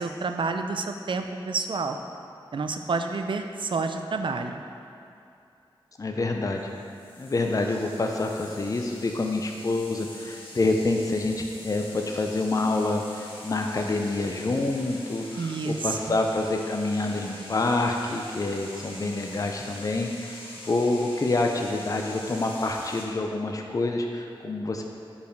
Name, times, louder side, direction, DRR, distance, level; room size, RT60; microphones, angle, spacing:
voice 1, 0.0-2.0 2.5-4.6 15.3-16.2, right 4 dB, 60° right, 6 dB, 0.4 m, -29 dB
voice 2, 6.0-6.6 7.2-20.4 20.6-24.8, left 2 dB, 35° left, 2 dB, 0.5 m, -27 dB
sound 1, 6.6-23.0, left 1 dB, 70° left, 1.4 m, -44 dB
5.0 x 4.9 x 5.2 m, 2.6 s
wide cardioid pair, 65°, 10 cm